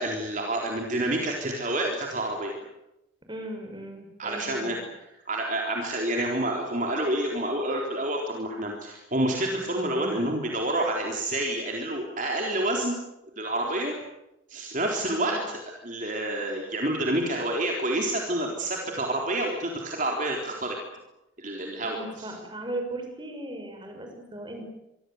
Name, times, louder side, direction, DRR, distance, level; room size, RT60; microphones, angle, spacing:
voice 1, 0.0-2.5 4.2-4.8 5.3-12.9 13.4-13.9 14.5-15.4 15.8-20.8 21.4-22.3, right 1 dB, 40° right, 0 dB, 4.0 m, -28 dB
voice 2, 3.3-4.7 15.1-15.4 21.8-24.6, right 1 dB, 25° right, 4 dB, 6.3 m, -37 dB
26.5 x 24.0 x 8.1 m, 0.91 s
head